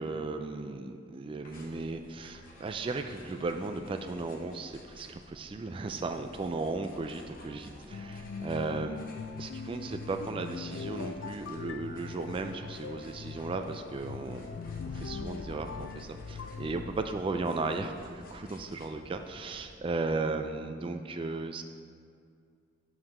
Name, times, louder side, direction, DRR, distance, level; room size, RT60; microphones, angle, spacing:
voice 1, 0.0-9.0 9.4-14.4 14.9-21.6, right 3 dB, 25° right, 6 dB, 0.3 m, -35 dB
sound 1, 1.4-19.7, left 1 dB, 50° left, 1.0 m, -53 dB
sound 2, 7.9-17.2, left 4 dB, 65° left, 0.3 m, -41 dB
5.6 x 4.7 x 6.4 m, 2.2 s
head